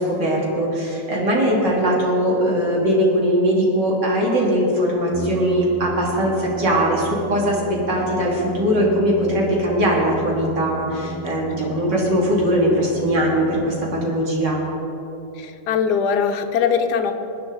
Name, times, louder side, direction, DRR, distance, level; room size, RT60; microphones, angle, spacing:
voice 1, 0.0-14.6, equal, 70° right, -3 dB, 3.3 m, -20 dB
Brass instrument, 5.1-14.6, equal, 15° right, 0.4 m, -34 dB
voice 2, 15.4-17.1, left 6 dB, 65° left, 6 dB, 1.4 m, -21 dB
20.5 x 9.9 x 4.0 m, 3.0 s
omnidirectional pair, 1.9 m